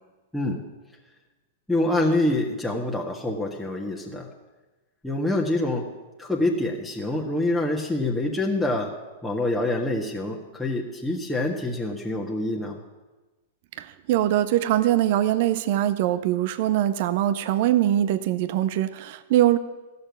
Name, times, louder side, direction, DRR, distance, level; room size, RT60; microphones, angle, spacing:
voice 1, 1.7-4.3 5.0-5.9 6.2-8.9 9.2-12.8, left 1 dB, 5° left, -3 dB, 1.7 m, -26 dB
voice 2, 13.8-19.6, right 12 dB, 55° right, 13 dB, 0.8 m, -22 dB
14.5 x 6.8 x 9.4 m, 1.2 s
hypercardioid pair, 105°, 0 cm